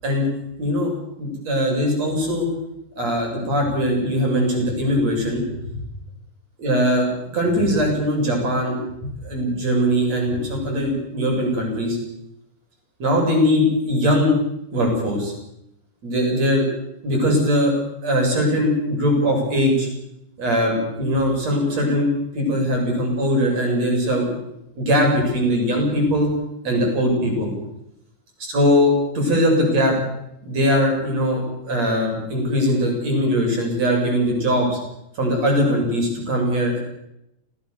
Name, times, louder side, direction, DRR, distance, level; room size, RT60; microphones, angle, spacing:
voice 1, 0.6-0.9 1.2-2.5 2.9-5.8 6.6-7.1 7.3-12.0 13.0-14.3 14.7-15.3 16.0-16.7 17.0-17.7 18.0-19.9 20.4-22.1 22.3-24.3 24.8-26.3 26.6-27.5 28.4-30.0 30.4-34.8 35.2-36.8, equal, 35° right, 1 dB, 9.0 m, -21 dB
29.5 x 19.0 x 7.2 m, 0.83 s
omnidirectional pair, 5.0 m